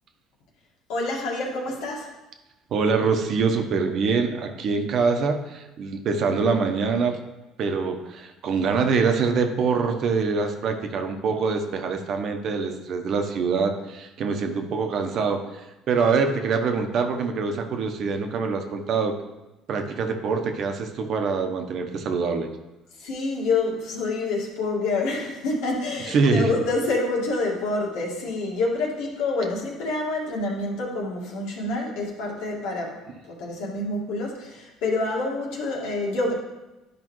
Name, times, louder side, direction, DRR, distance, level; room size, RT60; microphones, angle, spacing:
voice 1, 0.9-2.1 23.0-36.3, left 2 dB, 85° left, -2 dB, 1.9 m, -27 dB
voice 2, 2.7-7.2 7.6-15.4 15.9-19.1 19.7-22.5 26.1-26.5, right 5 dB, 55° right, 5 dB, 0.9 m, -24 dB
11.0 x 5.0 x 3.1 m, 1.0 s
cardioid pair, 110°, 0 cm